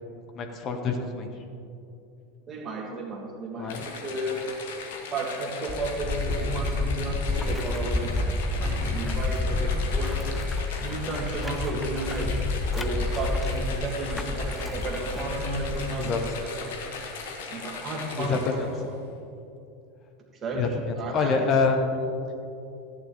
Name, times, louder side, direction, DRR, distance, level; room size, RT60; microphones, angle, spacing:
voice 1, 0.3-1.4 3.6-3.9 16.0-16.2 18.2-18.7 20.5-22.0, left 4 dB, 35° left, 4 dB, 0.8 m, -26 dB
voice 2, 2.5-4.5 5.1-10.3 10.8-16.1 16.4-16.8 17.5-18.8 20.4-22.1, right 2 dB, 30° right, -1 dB, 1.8 m, -33 dB
sound 1, 3.7-18.8, left 4 dB, 65° left, 1.2 m, -38 dB
sound 2, 5.7-16.5, left 2 dB, 10° left, 0.5 m, -29 dB
13.5 x 9.1 x 2.9 m, 2.7 s
figure-of-eight pair, 80°, 0 cm